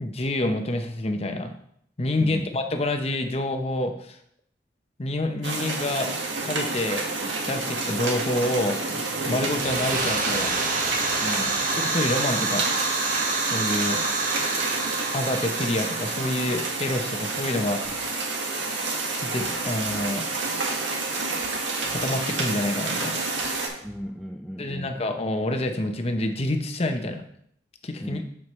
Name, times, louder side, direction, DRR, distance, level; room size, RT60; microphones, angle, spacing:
voice 1, 0.0-1.6 2.0-4.2 5.0-6.1 6.4-7.0 7.5-8.8 9.3-10.5 11.7-12.7 13.5-14.0 15.1-17.8 19.2-20.3 21.9-23.2 24.6-27.2 27.8-28.2, left 1 dB, 35° left, 6 dB, 0.8 m, -27 dB
voice 2, 2.2-2.5 11.2-11.6 23.8-25.1 28.0-28.3, equal, ahead, 2 dB, 0.4 m, -36 dB
sound 1, 5.4-23.7, right 3 dB, 90° right, 1.8 m, -29 dB
sound 2, 9.4-17.9, right 3 dB, 50° right, 1.3 m, -28 dB
sound 3, 17.8-18.2 19.4-20.2 21.4-22.2 23.4-24.2, equal, 65° right, 1.9 m, -51 dB
7.7 x 7.5 x 3.2 m, 0.67 s
head